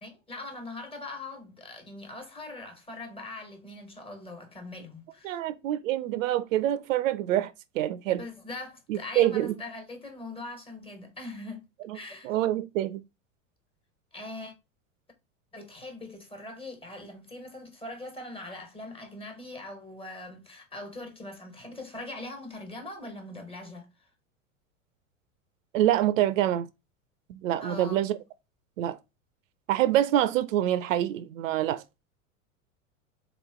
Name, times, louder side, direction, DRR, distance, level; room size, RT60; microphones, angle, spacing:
voice 1, 0.0-5.4 8.2-11.6 11.9-12.3 14.1-14.5 15.5-24.1 27.6-28.1, left 2 dB, 15° left, 1.4 m, -41 dB
voice 2, 5.2-8.2 8.9-9.6 11.9-12.0 12.2-13.0 25.7-26.7 27.3-28.2 28.8-29.0 29.7-31.8, right 12 dB, 75° right, 0.5 m, -26 dB
3.7 x 3.0 x 3.5 m
hypercardioid pair, 95°, 40 cm